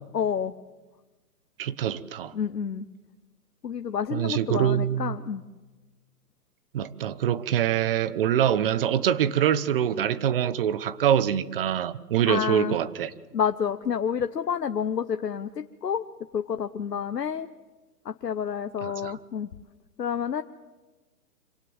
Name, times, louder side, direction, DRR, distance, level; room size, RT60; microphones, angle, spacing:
voice 1, 0.1-0.5 2.3-2.8 3.6-5.4 12.3-12.7 13.3-16.0 16.3-17.5 18.0-19.5 20.0-20.4, left 7 dB, 90° left, 1.0 m, -29 dB
voice 2, 1.6-2.3 4.1-5.2 6.7-13.1 18.8-19.1, right 10 dB, 35° right, 0.9 m, -25 dB
26.0 x 17.5 x 7.9 m
hypercardioid pair, 145°, 47 cm